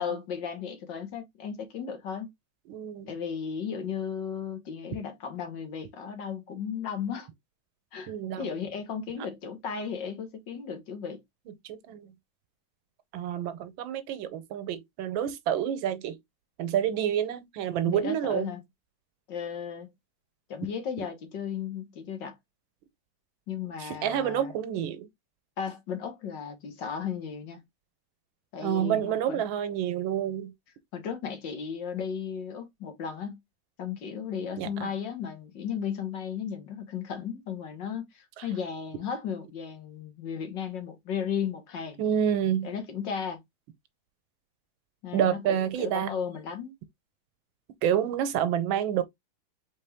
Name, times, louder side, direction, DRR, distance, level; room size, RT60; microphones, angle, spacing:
voice 1, 0.0-2.3 3.1-7.3 7.9-11.2 17.8-18.6 19.3-19.9 20.5-22.4 23.5-24.5 25.6-27.6 28.5-29.5 30.9-33.4 33.8-42.0 42.6-43.4 45.0-46.7, left 7 dB, 70° left, 1.9 m, -35 dB
voice 2, 2.7-3.1 8.1-8.5 11.6-12.1 13.1-16.2 16.6-18.5 23.8-25.1 28.6-30.5 34.6-34.9 38.4-38.5 42.0-42.7 45.1-46.2 47.8-49.0, right 9 dB, 85° right, 1.5 m, -28 dB
4.2 x 3.6 x 3.4 m
omnidirectional pair, 2.1 m